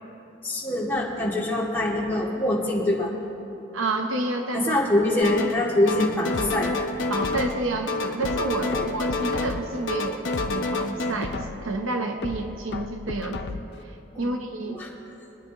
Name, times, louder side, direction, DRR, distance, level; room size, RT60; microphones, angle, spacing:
voice 1, 0.4-3.1 4.5-6.7 8.7-8.8 14.1-14.3 14.6-14.9, left 1 dB, 10° left, -7 dB, 2.2 m, -24 dB
voice 2, 3.7-4.8 7.1-13.4 14.2-14.8, right 2 dB, 85° right, 3 dB, 0.9 m, -29 dB
sound 1, 5.2-5.6 5.9-7.6 7.9-9.6 9.9-11.1, left 3 dB, 70° left, 1.0 m, -28 dB
sound 2, 6.3-7.8 8.2-9.8 10.2-11.8 12.2-13.8 14.2-14.3, left 4 dB, 55° left, 0.4 m, -36 dB
24.0 x 10.0 x 3.0 m, 2.9 s
head